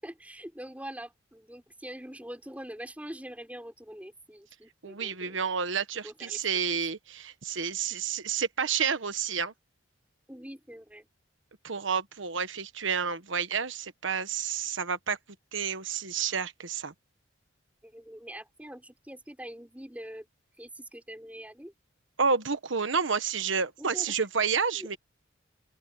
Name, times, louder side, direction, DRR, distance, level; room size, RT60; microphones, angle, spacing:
voice 1, 0.0-5.4 6.0-6.8 10.3-11.1 17.8-20.3 20.6-21.7 23.8-24.2 24.7-24.9, right 1 dB, 10° right, 5.2 m, -44 dB
voice 2, 4.8-9.5 11.6-15.2 15.5-16.9 22.2-25.0, right 6 dB, 75° right, 1.3 m, -30 dB
open air
head